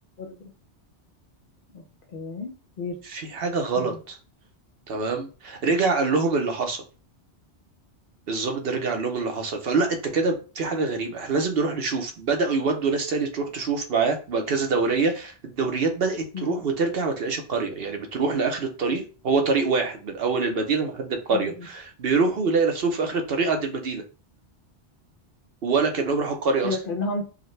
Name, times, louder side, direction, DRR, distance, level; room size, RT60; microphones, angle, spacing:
voice 1, 2.1-2.5 2.8-3.0 3.8-4.0 16.3-16.6 21.3-21.5 26.6-27.2, left 3 dB, 55° left, 3 dB, 0.8 m, -31 dB
voice 2, 3.0-4.2 4.9-6.8 8.3-24.0 25.6-26.8, right 4 dB, 60° right, 4 dB, 0.9 m, -25 dB
4.9 x 2.2 x 3.2 m, 0.35 s
omnidirectional pair, 1.2 m